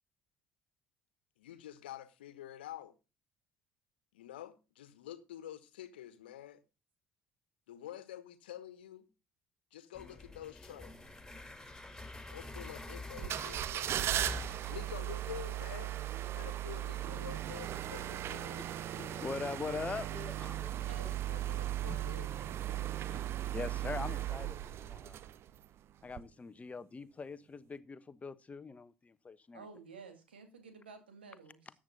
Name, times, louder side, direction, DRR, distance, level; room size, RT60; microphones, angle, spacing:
voice 1, 1.4-2.9 4.1-6.6 7.7-9.1 9.7-10.9 12.3-13.9 14.7-16.0 16.3-18.6 20.9-22.9, left 12 dB, 75° left, 1.5 m, -48 dB
sound 1, 9.9-15.0, left 2 dB, 10° left, 4.5 m, -47 dB
sound 2, 13.2-25.7 26.1-26.2, right 12 dB, 50° right, 0.8 m, -37 dB
voice 2, 19.0-20.9 21.9-22.1 23.1-23.2 23.5-25.2 26.0-29.7, left 4 dB, 25° left, 1.1 m, -42 dB
voice 3, 20.2-21.2 29.5-31.7, right 5 dB, 80° right, 2.3 m, -53 dB
13.5 x 8.8 x 4.1 m
figure-of-eight pair, 55°, 6 cm